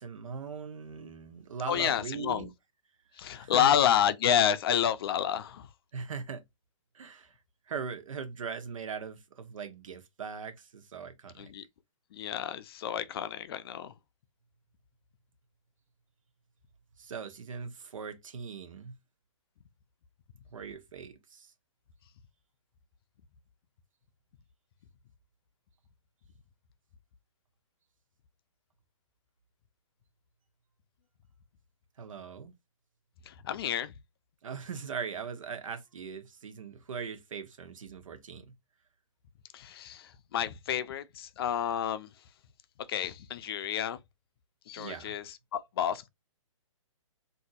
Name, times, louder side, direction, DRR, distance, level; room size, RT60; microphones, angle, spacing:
voice 1, 0.0-2.5 3.2-3.7 5.9-6.4 6.9-7.3 7.7-11.5 17.0-19.0 20.5-21.5 32.0-32.5 34.4-38.5 44.8-45.2, right 6 dB, 75° right, 0.9 m, -40 dB
voice 2, 1.7-2.5 3.2-5.7 11.4-11.6 12.1-13.9 33.3-33.9 39.5-42.1 42.9-44.0 44.7-46.1, left 9 dB, 45° left, 0.5 m, -29 dB
3.9 x 2.6 x 2.4 m
hypercardioid pair, 145°, 17 cm